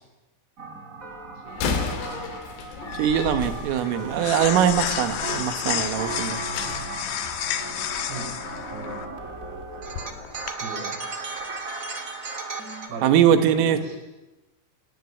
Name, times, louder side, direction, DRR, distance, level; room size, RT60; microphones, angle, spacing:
sound 1, 0.6-12.9, right 3 dB, 35° right, 1.3 m, -36 dB
voice 1, 1.4-2.3 8.1-8.4 8.7-9.1 10.5-11.0 12.9-14.0, right 3 dB, 55° right, 3 dB, 7.4 m, -38 dB
Slam, 1.5-6.9, left 5 dB, 90° left, 5.2 m, -33 dB
sound 2, 2.0-10.5, left 10 dB, 65° left, 3.1 m, -32 dB
voice 2, 3.0-6.4 13.0-13.8, right 9 dB, 90° right, 9 dB, 4.2 m, -21 dB
28.5 x 17.0 x 9.9 m, 1.1 s
omnidirectional pair, 5.7 m